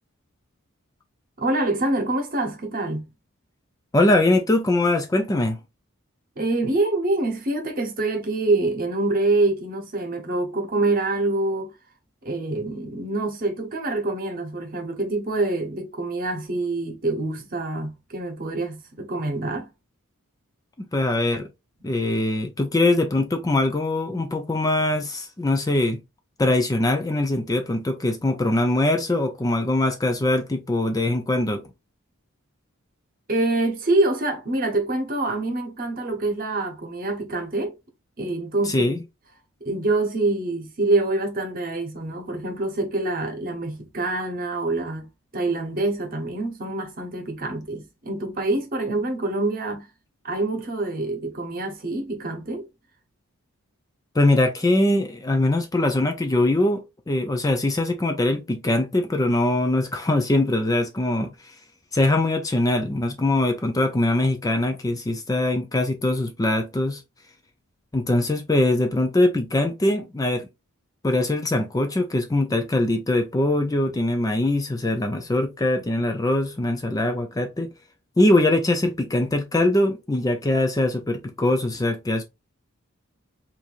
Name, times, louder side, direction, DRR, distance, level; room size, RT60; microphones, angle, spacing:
voice 1, 1.4-3.1 6.4-11.7 12.2-19.7 33.3-37.7 38.2-39.0 39.6-49.9 50.2-52.6, right 2 dB, 40° right, 0.9 m, -26 dB
voice 2, 3.9-5.6 20.8-21.5 21.8-26.0 26.4-31.6 38.7-39.0 54.1-56.8 57.1-61.5 61.9-67.0 67.9-70.5 71.0-77.7 78.2-82.2, left 2 dB, 15° left, 0.4 m, -22 dB
4.5 x 2.6 x 2.4 m
head